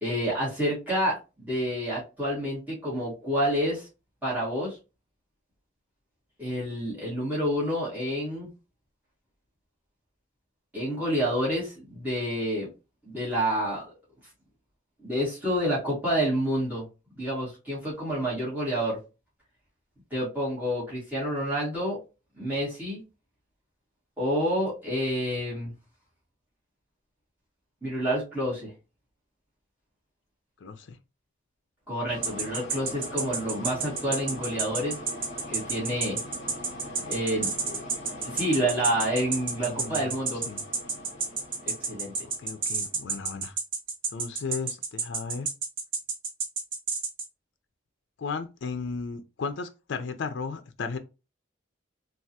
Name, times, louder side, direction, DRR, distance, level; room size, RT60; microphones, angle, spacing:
voice 1, 0.0-3.9 4.2-4.8 6.4-8.5 10.7-12.7 13.0-13.8 15.0-16.9 17.1-19.0 20.1-22.0 22.4-23.0 24.2-25.7 27.8-28.7 31.9-34.9 35.5-36.2 37.0-37.8 38.2-40.4 41.9-42.1, equal, 10° right, 1.5 m, -28 dB
voice 2, 30.6-31.0 39.6-40.1 40.5-40.6 42.4-43.6 44.1-45.5 48.2-51.0, left 4 dB, 65° left, 0.4 m, -35 dB
sound 1, 32.1-43.3, left 1 dB, 35° left, 1.5 m, -42 dB
sound 2, 32.2-47.3, right 4 dB, 70° right, 1.2 m, -30 dB
3.3 x 2.3 x 2.7 m
head